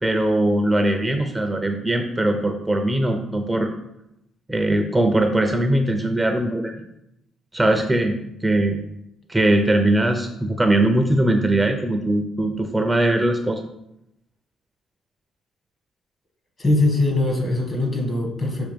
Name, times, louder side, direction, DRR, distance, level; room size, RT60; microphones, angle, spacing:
voice 1, 0.0-3.7 4.5-6.8 7.5-8.8 9.3-13.7, right 1 dB, 10° right, 5 dB, 0.6 m, -20 dB
voice 2, 16.6-18.7, left 2 dB, 35° left, 2 dB, 1.6 m, -21 dB
6.4 x 3.1 x 5.1 m, 0.83 s
cardioid pair, 90°, 0 cm